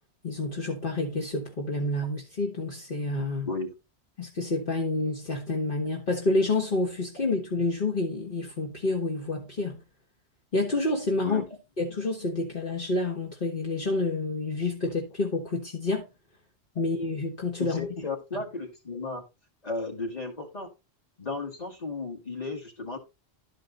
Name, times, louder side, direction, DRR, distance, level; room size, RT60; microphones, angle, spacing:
voice 1, 0.2-3.5 4.2-9.8 10.5-11.4 11.8-16.1 16.7-17.9, left 2 dB, 55° left, 1.6 m, -28 dB
voice 2, 17.6-19.2 19.6-20.7 21.2-23.0, left 3 dB, 40° left, 2.1 m, -34 dB
12.0 x 5.1 x 3.9 m
omnidirectional pair, 1.1 m